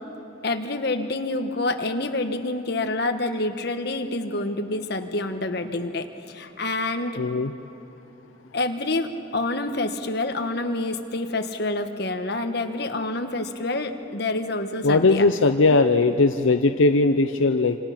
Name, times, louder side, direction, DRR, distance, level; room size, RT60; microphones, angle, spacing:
voice 1, 0.4-7.1 8.5-15.2, left 2 dB, 55° left, 6 dB, 1.4 m, -27 dB
voice 2, 7.2-7.5 14.8-17.8, left 3 dB, 80° left, 7 dB, 0.7 m, -19 dB
27.5 x 27.0 x 5.9 m, 2.9 s
head